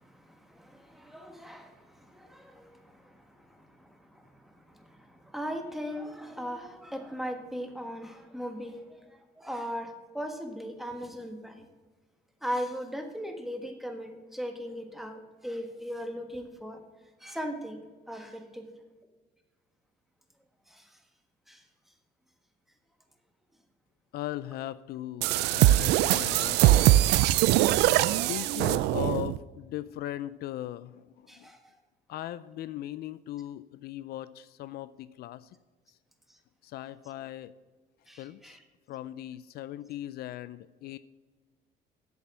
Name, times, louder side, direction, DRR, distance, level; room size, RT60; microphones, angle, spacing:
voice 1, 0.0-11.6 12.4-16.8 17.2-18.7 20.7-21.0 21.5-21.6 25.8-26.1 26.7-26.9 31.3-31.7 36.3-36.4 38.1-38.6, equal, ahead, 4 dB, 1.4 m, -39 dB
voice 2, 24.1-27.0 28.3-31.5 32.1-35.5 36.6-37.5 38.2-38.6 38.9-41.0, left 13 dB, 70° left, 16 dB, 0.4 m, -38 dB
sound 1, 25.2-29.4, right 15 dB, 85° right, 0.4 m, -22 dB
7.9 x 7.1 x 6.2 m, 1.3 s
cardioid pair, 110°, 17 cm